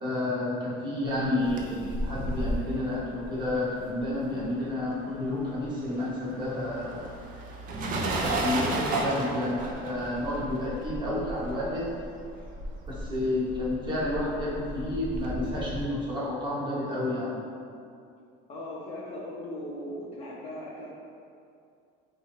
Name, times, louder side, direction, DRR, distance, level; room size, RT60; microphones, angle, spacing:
voice 1, 0.0-7.1 8.2-11.9 12.9-17.4, left 1 dB, 20° right, -7 dB, 0.8 m, -30 dB
sound 1, 1.2-4.9 5.1-15.9, right 1 dB, 40° right, 0.4 m, -34 dB
voice 2, 18.5-20.9, left 1 dB, 30° left, -6 dB, 0.4 m, -38 dB
4.1 x 2.3 x 3.1 m, 2.4 s
cardioid pair, 155°, 21 cm